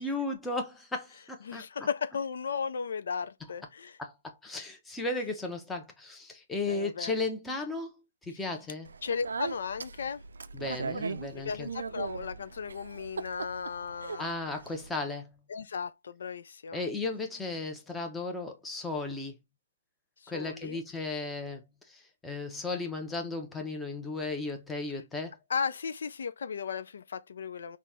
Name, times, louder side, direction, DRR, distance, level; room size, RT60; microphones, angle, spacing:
voice 1, 0.0-1.7 4.0-7.9 8.3-8.9 10.5-11.7 14.2-15.3 16.7-19.3 20.3-21.6 21.9-25.4, left 3 dB, 5° left, 0.9 m, -35 dB
voice 2, 1.4-4.0 6.7-7.1 8.3-8.4 9.0-10.2 11.4-14.3 15.5-16.8 20.2-20.8 24.9-25.0 25.5-27.8, left 6 dB, 70° left, 0.4 m, -35 dB
Speech, 8.9-14.9, right 5 dB, 80° right, 0.4 m, -39 dB
4.0 x 2.4 x 3.5 m
hypercardioid pair, 140°, 0 cm